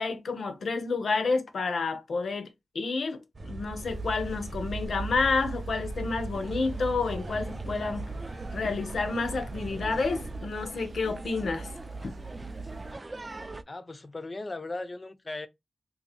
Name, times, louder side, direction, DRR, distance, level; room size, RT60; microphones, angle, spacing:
voice 1, 0.0-8.1 8.5-11.7, left 4 dB, 80° left, 0.7 m, -30 dB
sound 1, 3.3-10.4, right 2 dB, 50° right, 0.8 m, -40 dB
sound 2, 3.8-12.9, right 4 dB, 80° right, 0.6 m, -41 dB
sound 3, 6.3-13.6, right 2 dB, 30° right, 0.3 m, -43 dB
voice 2, 13.7-15.5, left 2 dB, 35° left, 0.5 m, -37 dB
2.8 x 2.5 x 4.0 m
wide cardioid pair, 85°, 0 cm